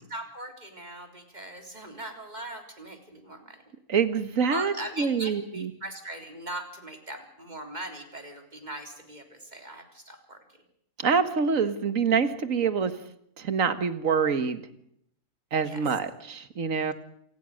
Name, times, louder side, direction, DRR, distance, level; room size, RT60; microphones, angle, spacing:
voice 1, 0.1-3.6 4.5-10.4 15.6-15.8, right 1 dB, 25° right, 5 dB, 3.7 m, -40 dB
voice 2, 3.9-5.7 11.0-12.9 13.4-14.6 15.5-16.9, right 6 dB, 55° right, 11 dB, 2.0 m, -26 dB
27.5 x 19.0 x 6.6 m, 0.72 s
omnidirectional pair, 1.7 m